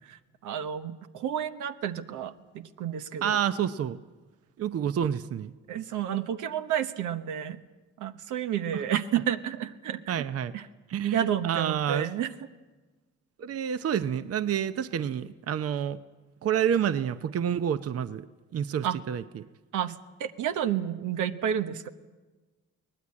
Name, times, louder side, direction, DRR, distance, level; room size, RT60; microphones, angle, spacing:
voice 1, 0.0-3.4 5.7-7.6 8.0-10.2 10.5-10.6 11.0-12.3 18.8-19.0 19.7-21.9, right 10 dB, 85° right, 10 dB, 1.1 m, -31 dB
voice 2, 3.2-4.0 4.6-5.5 8.7-8.8 10.1-10.5 10.9-12.1 13.4-16.0 16.4-18.3 18.5-19.4, right 9 dB, 50° right, 12 dB, 0.8 m, -29 dB
23.0 x 18.5 x 8.6 m, 1.3 s
cardioid pair, 90°, 30 cm